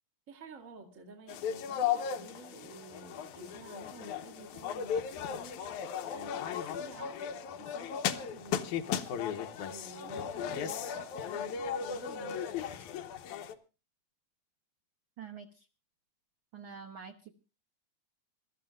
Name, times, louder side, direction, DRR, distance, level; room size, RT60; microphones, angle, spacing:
voice 1, 0.3-8.9 9.7-12.9, right 4 dB, 30° right, 2.1 m, -51 dB
sound 1, 1.3-13.5, left 8 dB, 85° left, 2.4 m, -36 dB
voice 2, 15.2-15.7 16.5-17.3, right 6 dB, 60° right, 1.4 m, -46 dB
27.0 x 13.5 x 2.5 m
omnidirectional pair, 3.4 m